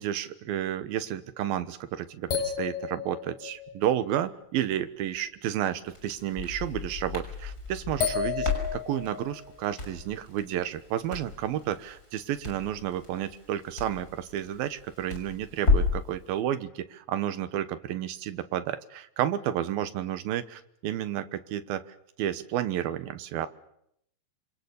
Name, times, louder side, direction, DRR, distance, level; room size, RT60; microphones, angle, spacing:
voice 1, 0.0-21.8 22.2-23.5, right 11 dB, 75° right, 11 dB, 2.9 m, -31 dB
sound 1, 2.3-4.2 6.7-6.8 8.0-9.4, left 7 dB, 85° left, 6.8 m, -32 dB
Crackle, 5.9-16.1, left 4 dB, 20° left, 6.2 m, -33 dB
27.0 x 26.0 x 7.0 m, 0.75 s
omnidirectional pair, 4.5 m